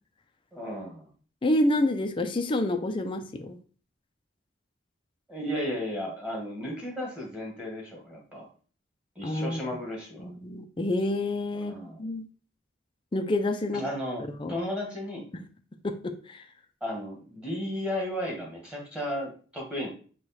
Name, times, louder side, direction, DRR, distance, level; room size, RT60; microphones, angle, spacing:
voice 1, 0.5-1.1 5.3-8.5 9.1-10.3 11.5-12.0 13.7-15.3 16.8-19.9, equal, 5° right, -3 dB, 1.5 m, -34 dB
voice 2, 1.4-3.6 9.2-9.6 10.2-11.7 12.0-12.3 13.1-13.8 14.3-14.5 15.3-15.4 15.8-16.4, left 1 dB, 25° left, 6 dB, 0.4 m, -28 dB
4.8 x 2.3 x 4.2 m, 0.41 s
head